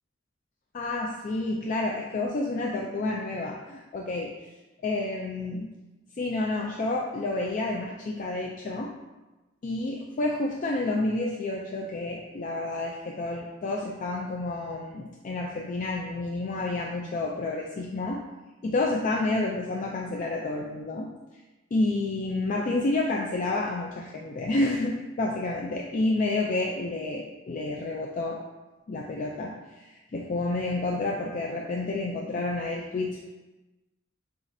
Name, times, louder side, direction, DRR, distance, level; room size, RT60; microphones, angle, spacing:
voice 1, 0.7-4.3 4.8-5.7 6.2-8.9 9.6-18.2 18.6-21.1 21.7-28.4 28.9-33.2, left 2 dB, 40° left, -1 dB, 0.3 m, -29 dB
7.0 x 2.4 x 2.6 m, 1.1 s
head